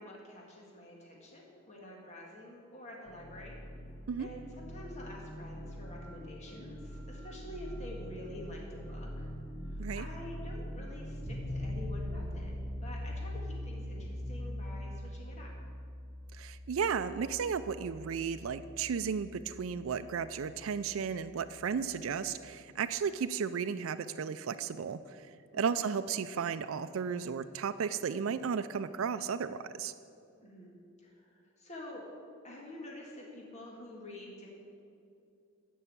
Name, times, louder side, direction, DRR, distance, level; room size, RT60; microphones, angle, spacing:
voice 1, 0.0-3.6 4.2-9.3 9.6-15.5 25.5-25.7 30.4-30.7 31.0-32.1 32.4-34.5, left 1 dB, 35° left, -2 dB, 1.8 m, -48 dB
sound 1, 3.0-12.9, equal, 60° left, 1.3 m, -44 dB
sound 2, 11.2-22.4, left 1 dB, 40° right, 1.6 m, -42 dB
voice 2, 16.3-25.3 25.5-29.9, right 6 dB, 75° right, 10 dB, 0.4 m, -34 dB
12.5 x 5.5 x 8.4 m, 2.5 s
head